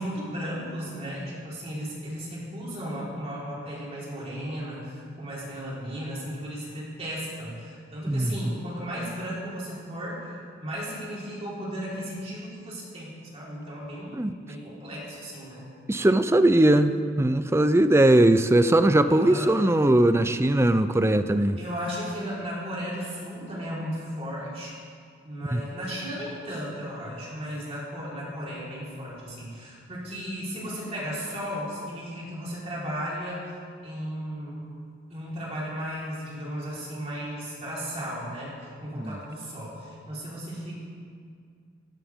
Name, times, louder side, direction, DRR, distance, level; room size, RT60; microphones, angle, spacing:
voice 1, 0.0-10.3 10.6-15.6 19.1-19.5 21.6-24.8 25.2-33.5 33.8-34.6 35.1-38.5 38.8-40.8, equal, 30° right, -7 dB, 4.2 m, -35 dB
voice 2, 8.1-8.5 14.2-14.3 15.9-21.6 25.5-25.6 39.0-39.2, right 1 dB, 15° right, 10 dB, 0.5 m, -20 dB
17.0 x 16.5 x 3.6 m, 2.2 s
head